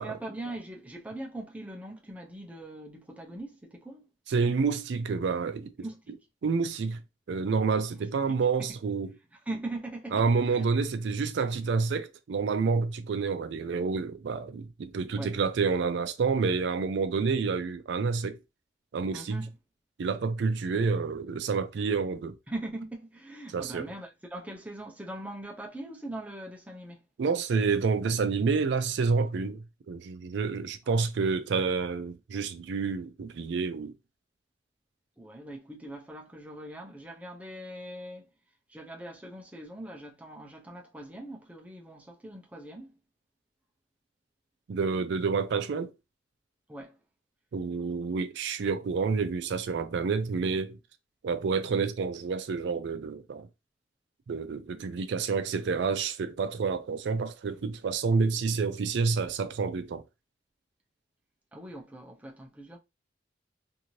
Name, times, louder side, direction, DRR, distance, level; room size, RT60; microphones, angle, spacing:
voice 1, 0.0-4.1 5.8-6.1 8.3-8.7 9.3-10.6 15.2-15.4 19.1-19.5 22.5-27.0 30.9-31.0 35.2-38.3 38.7-43.0 46.7-47.0 61.5-62.8, right 1 dB, 10° right, 0.5 m, -41 dB
voice 2, 4.3-5.7 6.4-7.0 7.3-9.1 10.1-18.4 18.9-19.4 20.0-22.4 23.5-23.9 27.2-33.9 44.7-45.9 47.5-50.8 51.2-53.5 54.3-60.0, right 5 dB, 70° right, 0.4 m, -28 dB
2.6 x 2.5 x 3.0 m
head